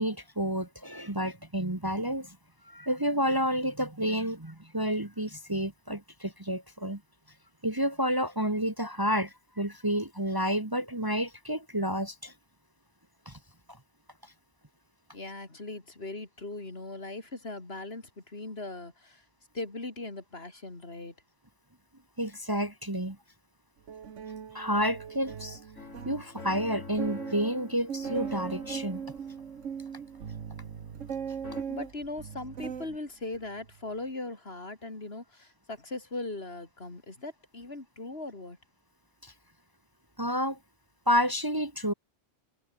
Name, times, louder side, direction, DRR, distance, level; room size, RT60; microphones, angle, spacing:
voice 1, 0.0-2.4 2.7-7.0 7.6-12.3 13.3-13.4 22.2-23.2 24.5-25.6 26.1-29.1 39.2-39.3 40.2-40.6 41.1-41.9, equal, 15° right, 1.8 m, -30 dB
voice 2, 15.1-19.2 19.5-21.1 31.7-38.6, left 2 dB, 50° left, 3.7 m, -39 dB
sound 1, 23.9-26.3 26.6-26.7 27.0-33.0 33.3-33.7, right 7 dB, 75° right, 1.6 m, -39 dB
sound 2, 25.8-31.1 31.4-31.6, left 3 dB, 80° left, 4.3 m, -46 dB
omnidirectional pair, 1.3 m